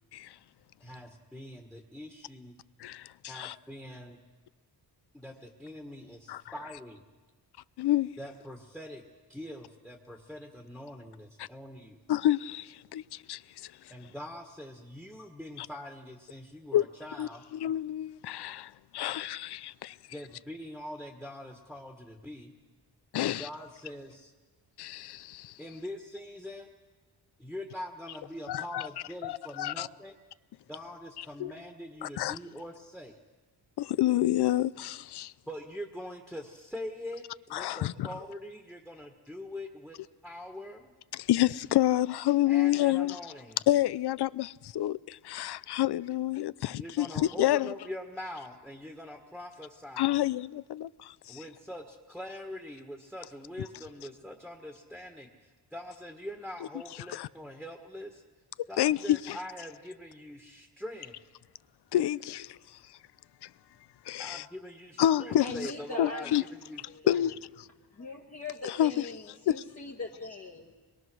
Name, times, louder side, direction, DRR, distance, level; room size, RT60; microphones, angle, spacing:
voice 1, 0.8-2.6 3.3-4.2 5.1-7.0 8.2-9.0 9.3-12.0 13.9-17.4 20.1-22.5 23.2-24.3 25.6-26.7 27.4-30.1 30.7-33.2 35.5-40.0 40.2-40.9 42.5-43.6 46.7-50.1 51.3-58.2 58.7-61.1 64.2-66.4 66.7-67.3, left 1 dB, ahead, 1.6 m, -43 dB
voice 2, 2.8-3.5 6.3-6.4 7.8-8.1 11.4-11.5 12.1-13.7 15.6-15.7 16.7-16.9 17.2-20.0 23.1-23.5 24.8-25.6 28.5-28.9 29.2-29.9 31.4-31.5 32.0-32.4 33.8-35.3 37.5-38.1 41.1-43.2 43.7-47.7 50.0-51.4 57.1-57.3 58.8-59.4 61.9-62.6 63.4-63.5 64.1-64.5 65.0-65.7 66.0-66.4 67.1-67.7 68.6-68.9 69.5-69.6, left 13 dB, 70° left, 0.6 m, -29 dB
voice 3, 65.4-66.4 66.9-67.1 67.9-70.7, left 3 dB, 35° left, 1.6 m, -40 dB
25.5 x 22.0 x 6.3 m
wide cardioid pair, 150°, 41 cm